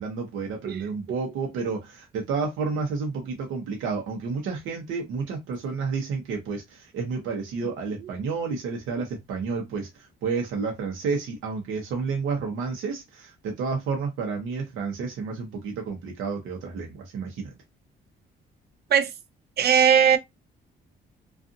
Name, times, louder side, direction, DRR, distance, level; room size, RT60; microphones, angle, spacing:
voice 1, 0.0-17.5, right 5 dB, 85° right, 0.8 m, -30 dB
voice 2, 19.6-20.2, right 8 dB, 55° right, 0.5 m, -18 dB
2.5 x 2.5 x 2.5 m
cardioid pair, 90°, 20 cm